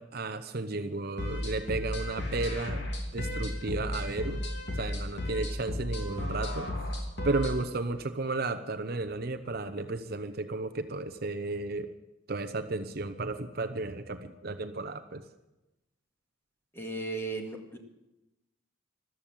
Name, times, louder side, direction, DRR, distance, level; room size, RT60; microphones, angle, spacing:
voice 1, 0.0-4.4 4.7-6.7 7.2-11.9 12.3-15.2, right 3 dB, 50° right, 10 dB, 0.8 m, -33 dB
sound 1, 1.2-7.6, left 1 dB, 60° left, 2.9 m, -34 dB
voice 2, 16.7-17.8, right 2 dB, 10° left, 2 dB, 2.0 m, -36 dB
14.0 x 12.5 x 7.5 m, 0.97 s
head